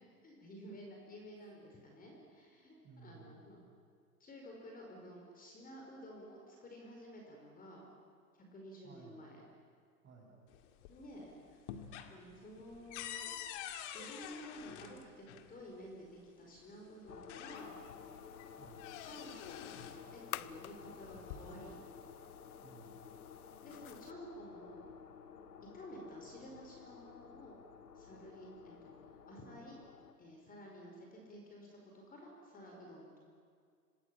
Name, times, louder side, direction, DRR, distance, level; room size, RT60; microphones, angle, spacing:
voice 1, 0.2-3.6 4.2-7.9 8.5-9.4 10.9-13.4 13.9-17.8 19.0-19.8 20.1-21.8 23.6-24.9 25.7-27.6 27.9-29.8 30.2-33.2, equal, 20° left, 0 dB, 4.9 m, -52 dB
voice 2, 2.8-3.6 8.8-9.2 10.0-10.4 18.6-18.9 22.6-23.0, right 5 dB, 25° right, 0 dB, 7.4 m, -58 dB
sound 1, 10.5-11.2 11.5-15.5 16.6-16.7 17.1-18.0 18.4-20.1 21.0-21.8, left 10 dB, 50° left, 2.3 m, -47 dB
sound 2, 17.1-30.1, left 7 dB, 85° left, 1.9 m, -54 dB
sound 3, 17.5-24.1, left 13 dB, 70° left, 0.9 m, -52 dB
27.0 x 19.0 x 8.9 m, 2.2 s
hypercardioid pair, 120°, 46 cm